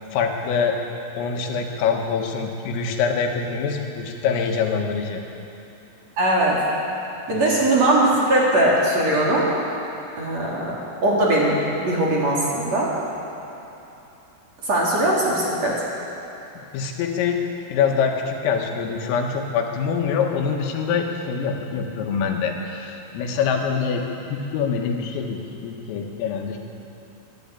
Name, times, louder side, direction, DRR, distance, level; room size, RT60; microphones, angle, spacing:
voice 1, 0.1-0.8 1.2-5.2 7.3-7.4 16.7-17.4 17.7-24.0 24.3-26.6, left 6 dB, 90° left, 2 dB, 4.3 m, -24 dB
voice 2, 6.2-6.6 7.3-9.5 10.2-10.8 11.0-12.9 14.6-15.8, right 1 dB, 40° right, -5 dB, 3.6 m, -20 dB
24.0 x 13.0 x 8.5 m, 3.0 s
omnidirectional pair, 5.8 m